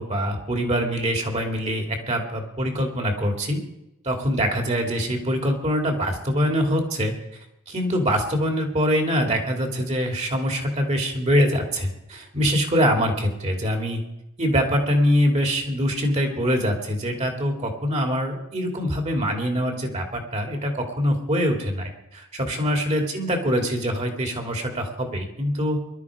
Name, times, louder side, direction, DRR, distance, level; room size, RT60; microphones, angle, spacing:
voice 1, 0.0-3.6 4.0-7.1 7.7-14.0 14.4-25.8, equal, 30° right, 3 dB, 2.6 m, -24 dB
21.0 x 12.0 x 4.9 m, 0.87 s
head